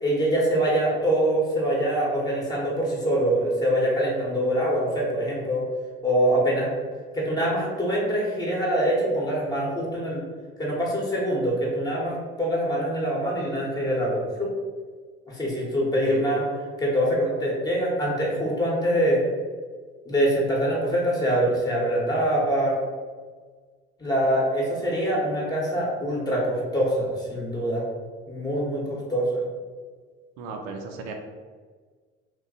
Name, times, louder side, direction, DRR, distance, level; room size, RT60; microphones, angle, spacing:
voice 1, 0.0-5.6 6.0-6.7 7.1-10.2 10.6-14.5 15.3-16.4 16.8-19.2 20.0-22.8 24.0-27.8 28.3-29.4, right 1 dB, 15° left, -3 dB, 1.2 m, -24 dB
voice 2, 30.4-31.1, right 4 dB, 70° right, 4 dB, 0.5 m, -35 dB
2.5 x 2.2 x 3.9 m, 1.5 s
hypercardioid pair, 65°, 29 cm